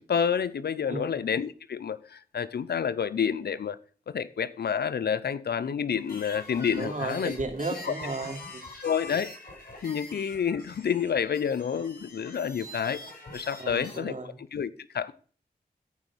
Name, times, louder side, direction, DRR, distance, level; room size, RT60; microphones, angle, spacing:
voice 1, 0.0-3.8 4.1-7.4 7.9-8.0 8.8-9.3 9.8-13.0 13.3-15.1, left 7 dB, 85° left, 0.7 m, -29 dB
sound 1, 6.0-14.0, left 2 dB, 65° left, 6.2 m, -44 dB
voice 2, 6.8-8.6 13.6-14.3, right 3 dB, 50° right, 3.1 m, -34 dB
14.0 x 5.0 x 6.1 m
cardioid pair, 40°, 16 cm